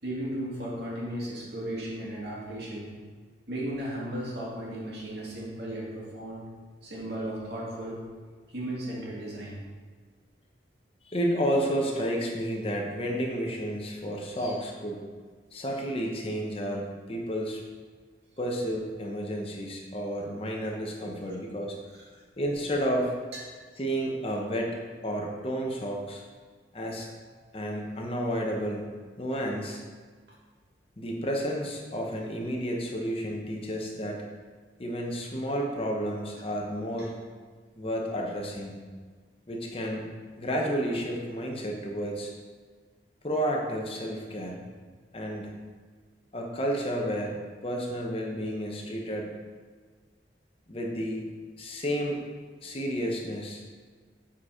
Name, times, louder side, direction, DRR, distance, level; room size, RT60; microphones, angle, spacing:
voice 1, 0.0-2.9 3.5-6.5 6.8-8.0 8.5-9.6 14.4-14.5 37.0-37.1, right 1 dB, 65° right, -5 dB, 2.1 m, -35 dB
voice 2, 11.0-15.0 15.5-17.6 18.4-21.8 22.4-23.1 23.8-24.8 25.0-26.2 26.7-27.1 27.5-29.8 31.0-34.3 34.8-37.1 37.8-38.8 39.5-40.1 40.4-42.3 43.2-44.6 45.1-45.6 46.3-49.4 50.7-51.2 51.6-52.2 52.6-53.6, equal, 30° left, 0 dB, 0.9 m, -31 dB
7.4 x 4.3 x 5.0 m, 1.5 s
head